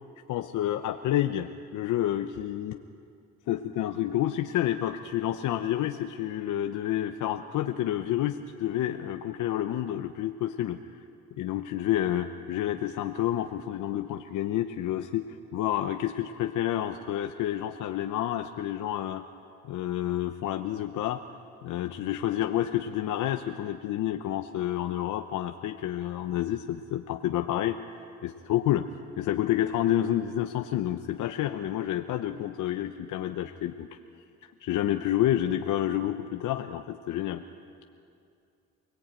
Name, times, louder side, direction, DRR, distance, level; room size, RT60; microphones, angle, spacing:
voice 1, 0.3-2.8 3.5-10.8 11.4-19.3 19.6-21.2 21.6-27.8 28.2-33.9 34.4-37.4, left 12 dB, 85° left, 6 dB, 0.9 m, -29 dB
28.0 x 19.0 x 9.0 m, 2.4 s
cardioid pair, 90°, 30 cm